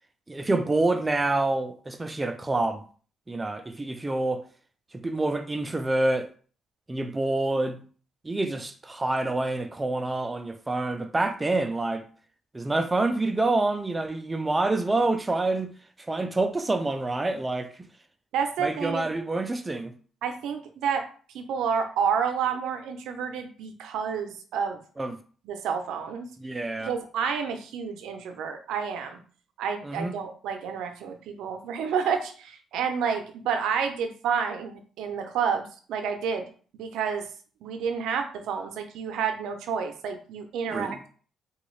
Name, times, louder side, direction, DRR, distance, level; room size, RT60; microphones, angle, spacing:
voice 1, 0.3-2.8 3.3-4.4 4.9-6.3 6.9-7.8 8.2-12.1 12.5-15.7 16.1-17.9 18.6-19.9 25.0-25.2 26.4-26.9 29.8-30.1 40.7-41.0, right 2 dB, 20° right, 0.4 m, -27 dB
voice 2, 18.3-19.1 20.2-21.0 21.3-24.8 25.4-26.3 26.8-29.2 29.6-36.5 36.7-37.3 37.6-41.1, right 6 dB, 85° right, 0.5 m, -29 dB
3.7 x 2.3 x 3.1 m
cardioid pair, 90°, 0 cm